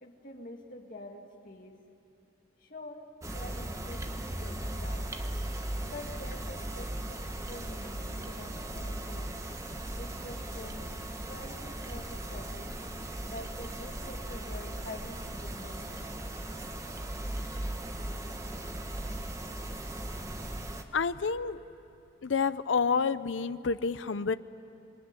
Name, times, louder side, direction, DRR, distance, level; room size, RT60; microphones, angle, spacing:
voice 1, 0.0-1.8 2.6-5.1 5.8-9.4 9.9-10.9 11.3-12.8 13.3-16.0, left 2 dB, 45° left, 2 dB, 2.4 m, -47 dB
sound 1, 3.2-20.8, right 1 dB, 15° right, 1.2 m, -38 dB
sound 2, 8.7-10.4, right 1 dB, 70° right, 3.6 m, -54 dB
voice 2, 20.9-21.6 22.2-24.4, left 5 dB, 85° left, 14 dB, 0.6 m, -29 dB
26.5 x 22.5 x 9.9 m, 2.7 s
head